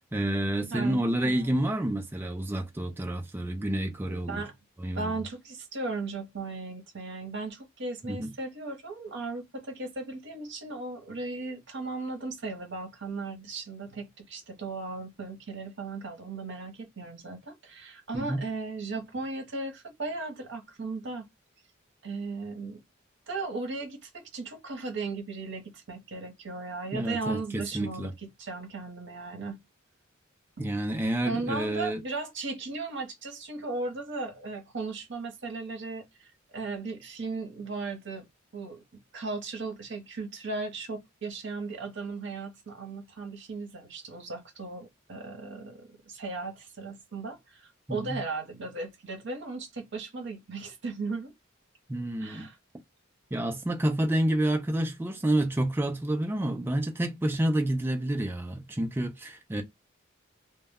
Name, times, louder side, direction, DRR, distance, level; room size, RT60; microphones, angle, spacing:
voice 1, 0.0-4.4 4.8-5.1 8.0-8.3 18.1-18.4 26.9-28.1 30.6-32.0 47.9-48.2 51.9-52.5 53.3-59.6, right 1 dB, 10° right, 0.3 m, -29 dB
voice 2, 0.7-1.6 4.1-4.6 5.0-21.3 22.0-22.8 23.3-29.6 30.6-30.7 31.2-38.3 38.5-51.3 52.2-52.6, right 3 dB, 60° right, 0.8 m, -37 dB
2.1 x 2.1 x 3.4 m
head